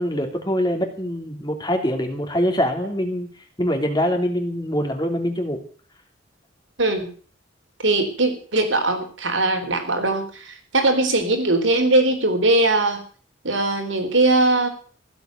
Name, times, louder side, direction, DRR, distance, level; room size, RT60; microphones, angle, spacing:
voice 1, 0.0-3.3 3.6-5.6, equal, 20° left, 4 dB, 3.0 m, -24 dB
voice 2, 6.8-7.1 7.8-13.0 13.4-14.7, right 2 dB, 80° right, 6 dB, 3.9 m, -20 dB
16.0 x 8.0 x 9.3 m, 0.43 s
head